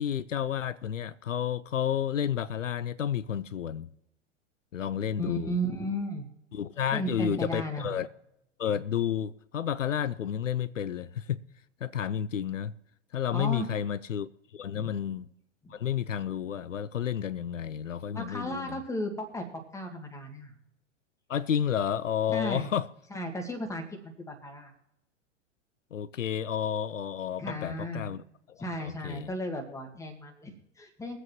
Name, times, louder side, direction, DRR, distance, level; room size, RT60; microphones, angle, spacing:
voice 1, 0.0-3.9 4.7-5.5 6.5-8.1 8.6-11.4 11.8-12.7 13.1-15.3 15.7-18.8 21.3-22.9 25.9-28.2 28.5-29.3, left 9 dB, 80° left, 0.5 m, -31 dB
voice 2, 5.2-6.3 6.9-8.0 13.3-13.7 15.6-15.7 18.1-20.6 22.3-22.7 23.1-24.7 27.4-28.1 28.6-31.2, equal, 10° left, 1.9 m, -35 dB
22.5 x 7.9 x 3.0 m
figure-of-eight pair, 90°, 38 cm